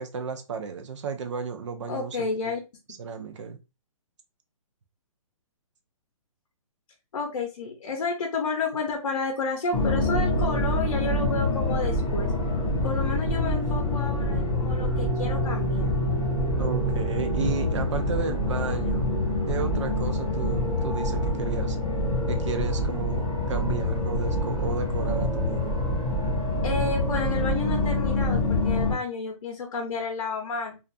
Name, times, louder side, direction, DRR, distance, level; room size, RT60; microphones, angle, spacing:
voice 1, 0.0-2.5 2.9-3.6 16.6-19.1 19.5-21.8 22.3-25.8, right 5 dB, 55° right, 0.5 m, -33 dB
voice 2, 1.9-2.6 7.1-12.3 12.8-15.9 26.6-30.8, left 4 dB, 60° left, 0.7 m, -31 dB
sound 1, 9.7-28.9, left 1 dB, ahead, 0.4 m, -26 dB
2.4 x 2.2 x 2.5 m
hypercardioid pair, 165°, 18 cm